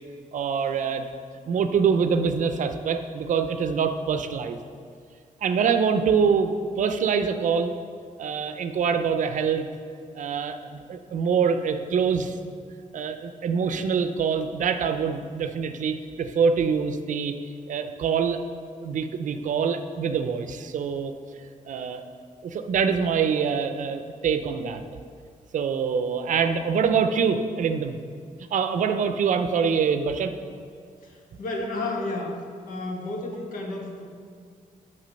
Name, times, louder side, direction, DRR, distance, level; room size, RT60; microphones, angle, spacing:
voice 1, 0.3-1.1 1.5-4.6 5.4-7.7 8.2-9.7 10.1-12.4 12.9-17.4 17.7-18.4 18.8-21.1 21.7-22.0 22.4-24.8 25.5-28.0 28.5-30.3, right 6 dB, 65° right, 9 dB, 0.5 m, -25 dB
voice 2, 31.0-32.3 32.7-34.0, left 2 dB, 75° left, 1 dB, 1.2 m, -32 dB
7.4 x 6.1 x 5.2 m, 2.2 s
wide cardioid pair, 135°, 14 cm